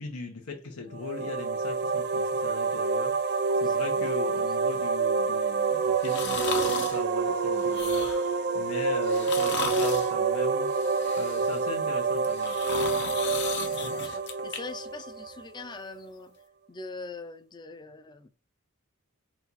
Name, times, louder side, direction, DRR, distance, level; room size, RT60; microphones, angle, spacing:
voice 1, 0.0-10.9 11.2-12.6, left 3 dB, 90° left, 0.8 m, -39 dB
sound 1, 0.9-15.6, right 4 dB, 50° right, 0.4 m, -27 dB
voice 2, 3.5-4.4 4.7-4.8 13.6-16.3 16.7-18.3, left 3 dB, 20° left, 0.4 m, -43 dB
sound 2, 6.0-7.0 7.6-8.3 9.0-10.1 10.7-11.6 12.2-14.6 15.0-15.1, left 6 dB, 55° left, 0.8 m, -35 dB
4.3 x 2.3 x 4.0 m
head